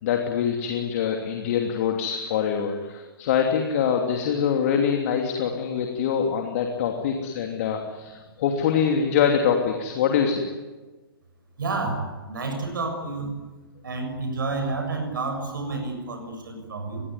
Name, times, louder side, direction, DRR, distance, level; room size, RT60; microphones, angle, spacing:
voice 1, 0.0-10.5, left 7 dB, 40° left, 3 dB, 2.9 m, -24 dB
voice 2, 11.6-13.4 13.8-17.0, right 3 dB, 60° right, 4 dB, 7.3 m, -30 dB
26.0 x 21.5 x 9.6 m, 1.2 s
figure-of-eight pair, 120°, 12 cm